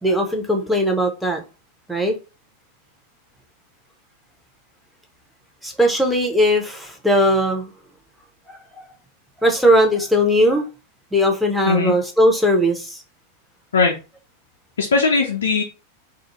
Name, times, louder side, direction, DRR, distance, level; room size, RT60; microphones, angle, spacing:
voice 1, 0.0-1.4 1.9-2.1 5.6-7.7 8.5-8.6 9.4-10.7 11.1-13.0, equal, ahead, 1 dB, 0.7 m, -18 dB
voice 2, 14.8-15.6, left 4 dB, 65° left, 0 dB, 0.4 m, -19 dB
2.4 x 2.0 x 2.9 m, 0.30 s
figure-of-eight pair, 90°, 0 cm